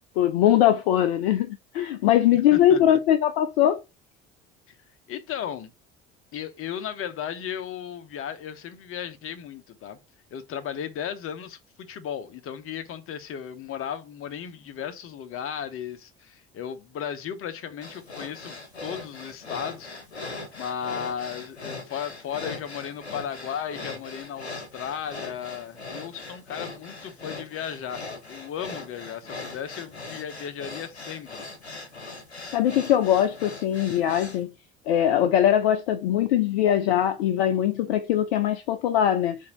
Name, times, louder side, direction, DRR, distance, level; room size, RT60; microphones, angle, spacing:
voice 1, 0.2-3.8 32.5-34.5 34.9-39.5, left 11 dB, 65° left, 0.6 m, -21 dB
voice 2, 2.3-3.0 4.7-4.8 5.1-5.7 6.3-10.0 10.3-31.4, left 8 dB, 40° left, 1.1 m, -35 dB
sound 1, 17.8-34.4, left 3 dB, 85° left, 0.9 m, -40 dB
6.3 x 2.8 x 5.5 m
figure-of-eight pair, 60°, 32 cm